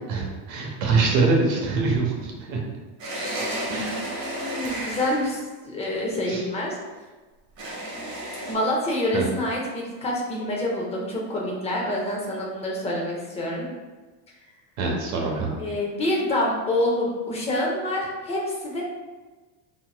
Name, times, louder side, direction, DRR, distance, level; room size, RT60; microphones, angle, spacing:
voice 1, 0.1-2.6 3.2-3.3 3.7-4.0 6.3-6.4 9.1-9.3 14.8-15.5, right 3 dB, 70° right, -1 dB, 1.1 m, -24 dB
sound 1, 3.0-5.4 7.6-8.5, right 1 dB, 40° right, 1.3 m, -32 dB
voice 2, 4.5-6.8 8.5-13.7 15.6-18.8, left 1 dB, 15° left, -3 dB, 0.4 m, -27 dB
4.4 x 4.2 x 2.3 m, 1.3 s
cardioid pair, 175°, 45 cm